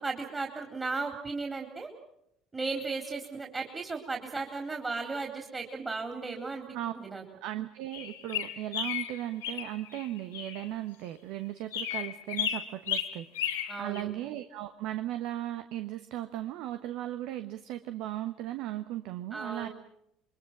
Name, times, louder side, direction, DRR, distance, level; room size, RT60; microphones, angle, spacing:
voice 1, 0.0-1.9 2.5-6.6 6.9-7.2 13.7-14.1 19.3-19.7, right 3 dB, 20° right, 2 dB, 3.9 m, -35 dB
voice 2, 7.4-19.7, right 13 dB, 60° right, 9 dB, 1.1 m, -37 dB
sound 1, 7.9-10.7 11.7-14.0, left 9 dB, 75° left, 2.4 m, -34 dB
28.0 x 23.0 x 6.2 m, 0.78 s
figure-of-eight pair, 60°, 0 cm